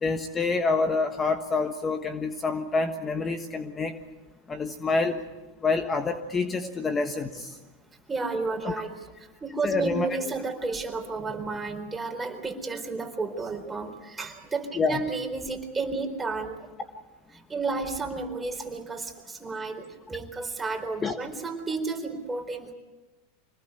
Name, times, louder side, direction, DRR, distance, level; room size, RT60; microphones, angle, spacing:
voice 1, 0.0-3.9 4.5-5.2 5.6-7.6 8.6-8.7 9.6-10.1 14.7-15.0 21.0-21.2, left 3 dB, 20° left, 7 dB, 1.4 m, -27 dB
voice 2, 8.1-16.6 17.5-22.7, right 3 dB, 15° right, 5 dB, 4.1 m, -32 dB
26.0 x 20.0 x 8.3 m, 1.1 s
hypercardioid pair, 110°, 0 cm